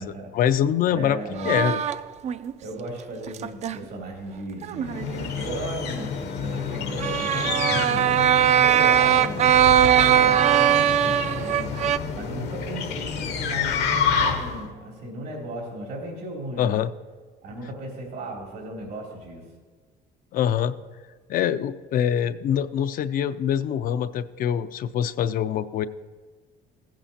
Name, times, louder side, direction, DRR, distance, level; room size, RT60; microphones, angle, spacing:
voice 1, 0.3-1.2 1.4-1.8 16.6-16.9 20.3-20.7 21.3-25.9, left 9 dB, 55° left, 13 dB, 0.4 m, -24 dB
voice 2, 0.9-1.7 2.6-8.2 8.6-9.5 9.8-11.7 12.1-16.8 17.4-19.4, right 1 dB, 85° right, -1 dB, 3.3 m, -36 dB
sound 1, 1.4-2.5 3.3-3.8 4.6-5.3 7.0-12.0, right 10 dB, 40° right, 0.4 m, -20 dB
sound 2, 4.8-14.7, left 6 dB, 80° left, 1.1 m, -29 dB
15.5 x 8.9 x 2.8 m, 1.5 s
cardioid pair, 110°, 17 cm